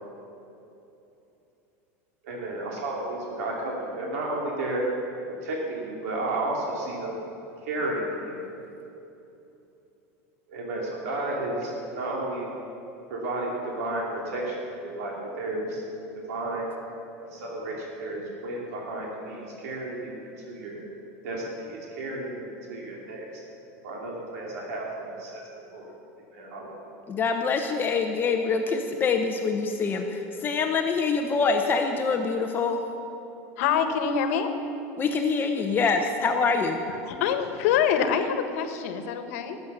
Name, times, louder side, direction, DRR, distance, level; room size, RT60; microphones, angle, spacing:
voice 1, 2.2-4.9 5.4-7.2 7.6-8.4 10.5-12.5 13.1-15.8 16.3-16.7 17.2-20.8 21.2-23.2 23.8-25.4 25.7-25.9 26.3-26.7, right 2 dB, 85° right, -3 dB, 2.8 m, -32 dB
voice 2, 27.1-32.8 35.0-36.8, left 4 dB, 25° left, 4 dB, 0.9 m, -25 dB
voice 3, 33.6-34.5 37.0-39.6, left 7 dB, 70° left, 8 dB, 1.4 m, -25 dB
19.0 x 8.2 x 6.7 m, 2.9 s
supercardioid pair, 140°, 8 cm